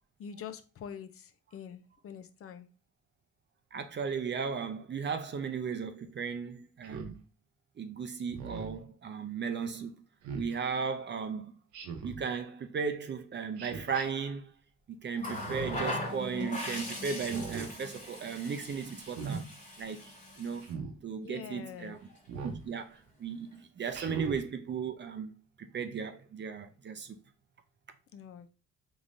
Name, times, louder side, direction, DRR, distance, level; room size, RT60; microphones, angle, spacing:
voice 1, 0.2-2.7 21.2-21.9 28.1-28.5, left 7 dB, 50° left, 0.5 m, -45 dB
voice 2, 3.7-7.2 7.8-9.9 10.3-11.5 12.0-14.5 14.9-20.1 20.4-20.7 21.0-22.0 22.4-25.3 25.6-27.2, right 6 dB, 35° right, 0.5 m, -36 dB
Speech synthesizer, 6.8-7.2 8.3-8.8 10.2-10.5 11.7-12.2 13.6-14.0 15.3-15.9 17.2-17.7 19.0-19.4 20.6-20.9 22.3-22.6 23.9-24.4, right 5 dB, 80° right, 0.8 m, -40 dB
Water tap faucet, 15.2-20.7 21.9-22.1, left 1 dB, 25° left, 1.3 m, -39 dB
3.6 x 3.1 x 2.5 m
cardioid pair, 90°, 30 cm